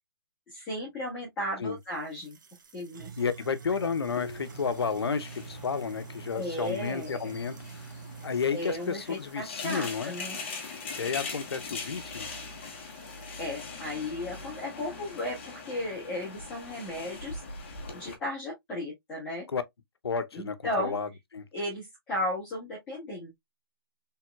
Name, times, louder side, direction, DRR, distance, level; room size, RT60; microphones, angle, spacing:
voice 1, 0.5-2.4 2.7-3.1 3.7-3.8 6.3-7.3 8.5-10.4 13.4-17.4 17.9-19.5 20.3-20.9 21.5-23.3, left 1 dB, 10° left, 1.5 m, -35 dB
sound 1, 1.8-13.9, right 6 dB, 50° right, 1.0 m, -48 dB
voice 2, 3.2-7.9 8.2-10.1 10.9-12.3 19.5-19.6 20.0-21.5, left 5 dB, 90° left, 0.8 m, -32 dB
sound 2, 4.1-18.2, left 4 dB, 30° left, 1.1 m, -42 dB
4.5 x 3.6 x 2.3 m
hypercardioid pair, 175°, 13 cm